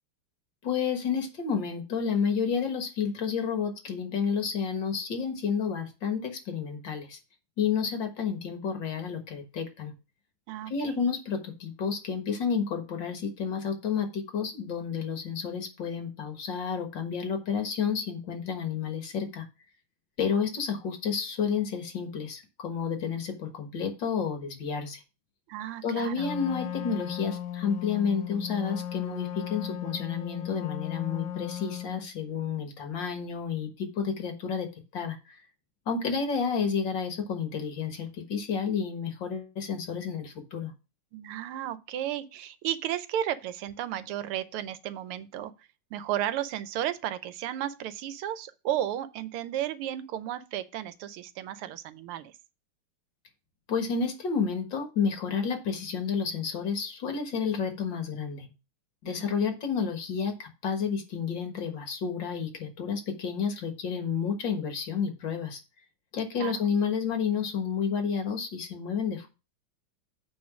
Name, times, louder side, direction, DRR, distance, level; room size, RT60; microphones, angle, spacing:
voice 1, 0.6-7.2 7.6-9.9 10.7-19.5 20.2-25.0 25.8-34.7 34.9-35.4 35.9-40.7 53.7-58.5 59.0-65.6 66.1-69.3, left 6 dB, 60° left, 2.1 m, -30 dB
voice 2, 10.5-11.0 25.5-26.3 41.1-45.5 45.9-52.3 59.0-59.3 66.4-66.6, right 11 dB, 85° right, 1.6 m, -33 dB
Wind instrument woodwind instrument, 26.1-32.1, left 11 dB, 75° left, 0.9 m, -36 dB
8.8 x 3.8 x 6.1 m
omnidirectional pair, 2.4 m